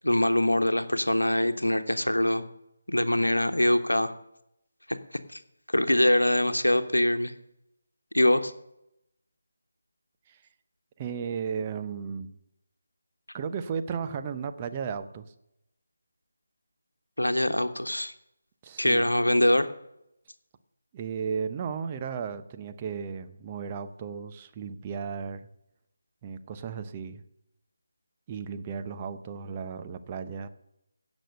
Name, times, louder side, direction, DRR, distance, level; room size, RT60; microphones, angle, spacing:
voice 1, 0.0-2.4 2.9-4.2 4.9-5.0 5.3-5.4 5.7-7.3 8.1-8.5 17.2-18.1 18.8-19.7, left 1 dB, 85° left, 10 dB, 1.1 m, -23 dB
voice 2, 11.0-12.3 13.3-15.3 18.6-19.1 20.9-25.4 26.2-27.2 28.3-30.5, right 6 dB, 25° right, 8 dB, 0.8 m, -34 dB
16.5 x 6.3 x 6.5 m, 0.82 s
figure-of-eight pair, 155°, 0 cm